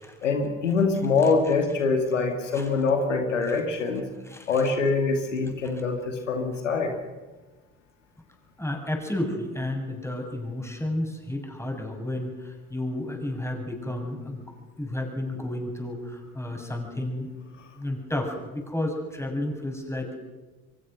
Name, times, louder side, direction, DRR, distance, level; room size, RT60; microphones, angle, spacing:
voice 1, 0.2-4.1 4.5-6.9, left 4 dB, 85° left, 4 dB, 2.4 m, -24 dB
voice 2, 4.2-4.6 5.7-5.8 8.6-17.3 17.7-20.2, left 1 dB, 5° left, 2 dB, 7.3 m, -32 dB
28.0 x 23.5 x 6.3 m, 1.2 s
figure-of-eight pair, 55°, 36 cm